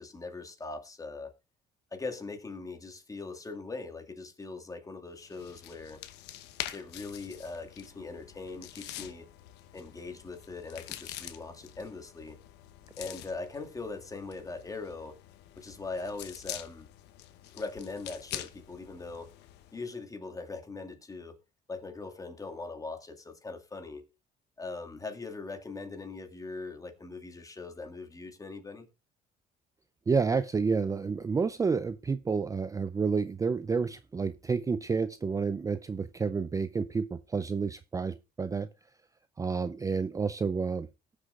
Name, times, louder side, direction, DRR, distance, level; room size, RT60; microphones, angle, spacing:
voice 1, 0.0-1.3 1.9-6.0 6.7-9.3 9.7-12.4 13.0-15.2 15.6-16.9 17.5-19.3 19.7-21.4 21.7-24.1 24.6-28.9, left 3 dB, 20° left, 2.0 m, -41 dB
sound 1, 5.2-19.8, left 13 dB, 85° left, 1.0 m, -46 dB
voice 2, 30.1-38.7 39.4-40.9, right 5 dB, 20° right, 0.4 m, -30 dB
19.5 x 6.5 x 2.4 m
cardioid pair, 110°, 17 cm